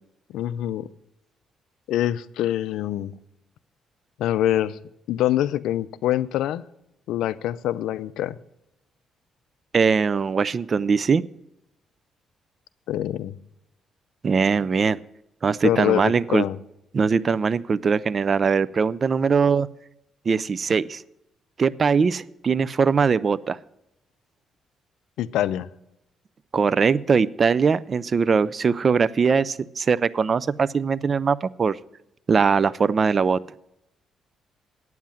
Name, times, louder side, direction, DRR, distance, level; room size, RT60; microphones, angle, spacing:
voice 1, 0.3-0.9 1.9-3.1 4.2-4.8 5.1-6.6 7.1-8.4 12.9-13.4 15.6-16.6 25.2-25.7, left 12 dB, 85° left, 16 dB, 0.4 m, -25 dB
voice 2, 9.7-11.2 14.2-15.0 15.4-16.4 16.9-19.7 20.3-21.0 21.6-23.6 26.5-31.8 32.3-33.4, right 5 dB, 40° right, 20 dB, 0.4 m, -21 dB
9.3 x 7.6 x 7.2 m, 0.85 s
cardioid pair, 90°, 0 cm